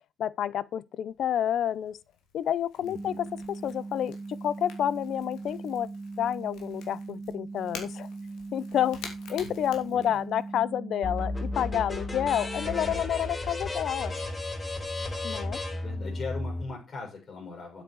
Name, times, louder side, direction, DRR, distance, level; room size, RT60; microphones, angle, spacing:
voice 1, 0.2-2.0 2.3-5.9 6.2-8.1 8.5-9.0 9.3-14.1 15.2-15.6, left 10 dB, 70° left, 0.7 m, -29 dB
Crackle / Crack, 1.1-10.6, left 6 dB, 90° left, 3.0 m, -49 dB
voice 2, 2.8-3.2 9.4-9.5 9.9-10.2 15.7-17.8, left 4 dB, 50° left, 6.0 m, -40 dB
sound 1, 2.9-12.9, right 3 dB, 30° right, 1.8 m, -40 dB
sound 2, 11.0-16.6, left 2 dB, 30° left, 4.0 m, -33 dB
9.0 x 8.3 x 4.7 m
cardioid pair, 90°, 0 cm